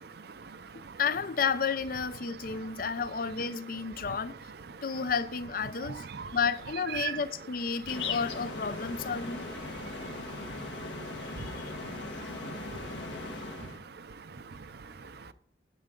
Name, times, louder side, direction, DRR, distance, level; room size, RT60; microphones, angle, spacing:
voice 1, 0.0-1.0 2.2-2.9 3.5-3.6 4.0-4.2 4.7-4.8 5.8-6.4 6.9-7.2 9.6-15.3, right 6 dB, 60° right, 0.5 m, -43 dB
voice 2, 1.0-4.4 4.8-6.0 6.3-9.5 11.3-11.7, left 5 dB, 50° left, 0.5 m, -32 dB
sound 1, 7.9-13.8, left 3 dB, 75° left, 1.4 m, -39 dB
11.5 x 8.7 x 3.8 m
head